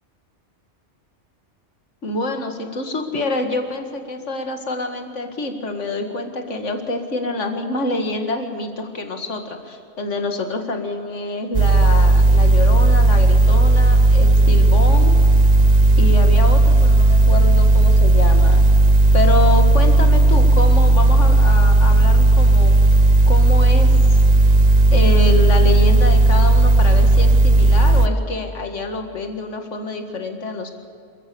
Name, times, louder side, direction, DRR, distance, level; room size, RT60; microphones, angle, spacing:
voice 1, 2.0-15.1 16.0-18.6 19.1-22.7 23.3-23.9 24.9-30.7, left 2 dB, 85° left, 5 dB, 2.2 m, -26 dB
sound 1, 11.5-28.1, right 2 dB, 40° right, 0.7 m, -13 dB
28.0 x 14.0 x 7.0 m, 2.5 s
omnidirectional pair, 1.2 m